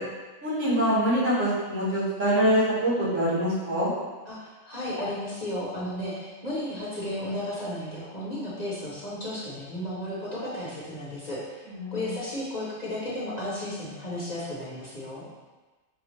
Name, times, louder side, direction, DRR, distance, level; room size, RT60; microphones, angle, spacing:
voice 1, 0.4-3.9 11.7-12.1, equal, 85° right, -11 dB, 2.1 m, -24 dB
voice 2, 4.2-11.6 11.9-15.2, left 1 dB, 35° left, -8 dB, 0.9 m, -34 dB
5.5 x 2.3 x 3.1 m, 1.3 s
omnidirectional pair, 1.3 m